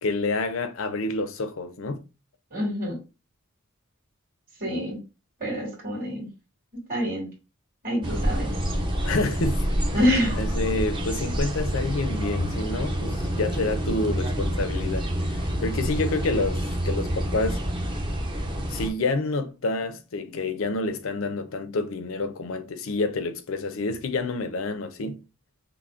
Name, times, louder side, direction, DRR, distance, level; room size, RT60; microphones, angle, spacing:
voice 1, 0.0-2.0 9.0-9.6 9.9-10.0 10.3-17.6 18.7-25.2, left 3 dB, 75° left, 0.5 m, -28 dB
voice 2, 2.5-3.0 4.6-5.0 5.4-6.3 6.9-7.3 7.8-8.5 9.9-10.4, equal, 40° right, 2.0 m, -26 dB
sound 1, 8.0-18.9, equal, 25° right, 0.6 m, -27 dB
5.6 x 2.1 x 2.4 m
head